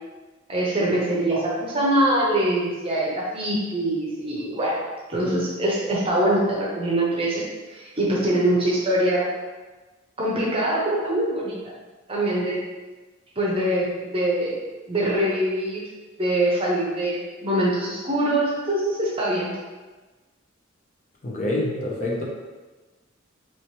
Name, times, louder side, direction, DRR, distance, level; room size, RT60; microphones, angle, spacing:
voice 1, 0.5-4.8 5.1-7.5 7.7-9.3 10.2-11.6 12.1-12.6 13.4-14.6 14.9-15.8 16.2-19.5, right 1 dB, 25° right, -5 dB, 0.6 m, -23 dB
voice 2, 21.2-22.2, left 1 dB, 35° left, -3 dB, 0.5 m, -26 dB
3.0 x 3.0 x 3.0 m, 1.3 s
head